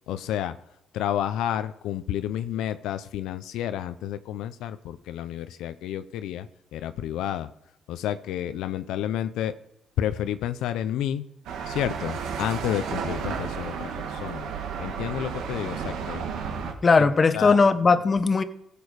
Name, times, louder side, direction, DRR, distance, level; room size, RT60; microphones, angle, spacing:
voice 1, 0.1-0.6 0.9-7.5 7.9-9.5 10.0-11.3 11.7-14.5 14.8-16.2 17.0-17.1 17.3-17.6, left 11 dB, 90° left, 11 dB, 0.5 m, -30 dB
sound 1, 11.4-16.7, right 6 dB, 85° right, 1.5 m, -32 dB
voice 2, 16.8-18.4, left 4 dB, 35° left, 11 dB, 0.9 m, -19 dB
15.5 x 7.0 x 4.8 m, 0.82 s
cardioid pair, 90°, 0 cm